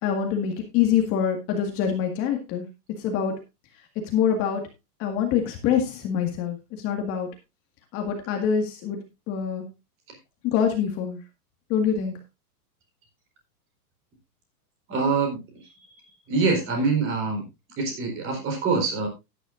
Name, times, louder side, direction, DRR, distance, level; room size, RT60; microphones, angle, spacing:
voice 1, 0.0-2.6 3.0-3.4 4.1-4.6 5.0-7.3 7.9-9.0 9.3-9.7 10.4-11.2 11.7-12.1, left 8 dB, 30° left, 3 dB, 1.8 m, -25 dB
voice 2, 14.9-15.4 16.3-17.4 17.8-19.1, right 4 dB, 25° right, 4 dB, 4.3 m, -24 dB
14.5 x 10.0 x 2.5 m, 0.24 s
supercardioid pair, 160°, 48 cm